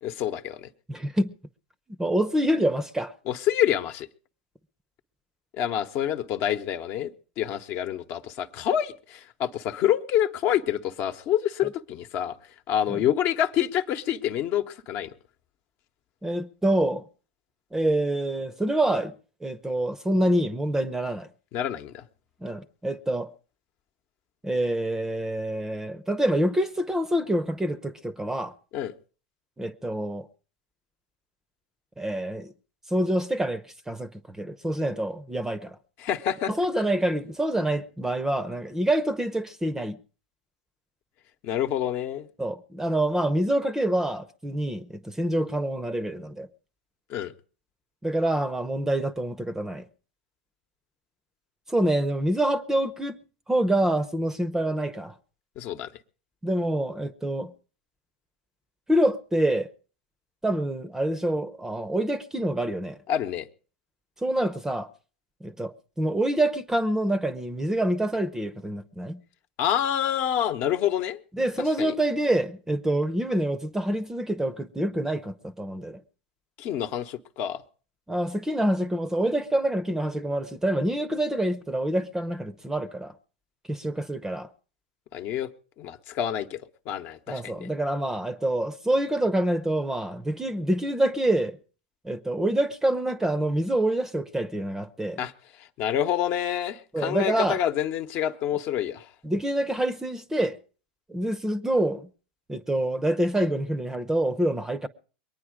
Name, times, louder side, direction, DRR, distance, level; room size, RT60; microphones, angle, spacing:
voice 1, 0.0-0.7 3.3-4.1 5.6-12.3 12.7-15.1 21.5-22.1 28.7-28.9 36.0-36.5 41.4-42.3 47.1-47.3 55.6-55.9 63.1-63.5 69.6-71.2 71.8-71.9 76.6-77.6 85.1-85.5 85.8-87.7 95.2-95.3 95.8-99.1, left 10 dB, 45° left, 1.1 m, -27 dB
voice 2, 0.9-1.3 2.0-3.1 12.9-13.0 16.2-17.0 17.7-19.1 19.4-21.3 22.4-23.3 24.4-28.5 29.6-30.3 32.0-32.5 32.9-35.8 36.5-40.0 42.4-46.5 48.0-49.9 51.7-53.2 53.5-55.1 56.4-57.5 58.9-59.7 60.4-63.0 64.2-64.9 65.4-69.2 71.3-76.0 78.1-83.1 83.7-84.5 87.3-91.6 92.0-95.2 96.9-97.6 99.2-100.6 101.1-102.1 102.5-104.9, right 1 dB, 10° right, 0.8 m, -26 dB
22.5 x 9.5 x 5.0 m
hypercardioid pair, 100°, 5 cm